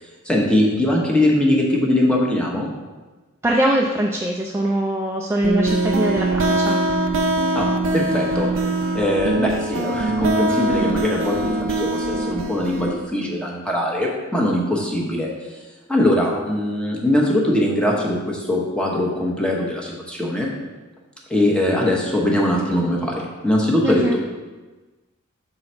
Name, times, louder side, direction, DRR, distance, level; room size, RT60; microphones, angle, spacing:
voice 1, 0.2-2.7 7.5-7.7 7.9-8.5 8.9-15.3 15.9-20.5 21.3-24.2, left 1 dB, 5° left, -2 dB, 1.0 m, -21 dB
voice 2, 3.4-6.8 23.8-24.2, right 1 dB, 10° right, -2 dB, 0.4 m, -22 dB
sound 1, 5.4-13.0, right 2 dB, 60° right, 0.6 m, -22 dB
6.9 x 3.9 x 4.4 m, 1.2 s
head